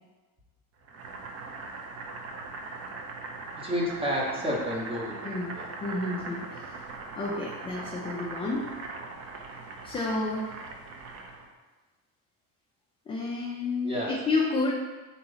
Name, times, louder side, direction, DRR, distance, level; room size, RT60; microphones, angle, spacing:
Boiling, 0.9-11.5, right 3 dB, 40° right, 0.5 m, -40 dB
voice 1, 3.5-5.1 5.5-5.7 13.8-14.1, equal, 15° right, -3 dB, 0.9 m, -30 dB
voice 2, 5.2-6.8 7.2-8.7 9.8-10.5 13.1-14.7, left 3 dB, 15° left, -3 dB, 0.4 m, -30 dB
3.9 x 2.9 x 3.9 m, 1.3 s
cardioid pair, 130°, 40 cm